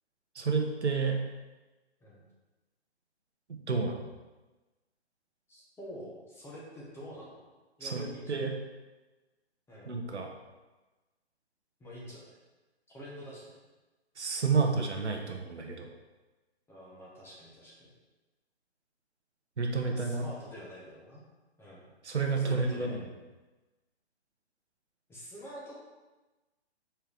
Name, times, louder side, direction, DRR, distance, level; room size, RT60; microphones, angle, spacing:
voice 1, 0.3-1.2 3.5-4.1 7.8-8.5 9.9-10.3 14.2-15.9 19.6-20.3 22.0-23.0, right 4 dB, 85° right, 3 dB, 1.2 m, -30 dB
voice 2, 5.5-7.4 7.8-8.4 9.7-9.9 11.8-12.4 12.9-13.6 16.7-17.9 19.9-21.2 21.6-21.8 22.4-23.0 25.1-25.7, equal, 5° left, -6 dB, 1.1 m, -46 dB
4.6 x 4.5 x 5.3 m, 1.2 s
hypercardioid pair, 140°, 33 cm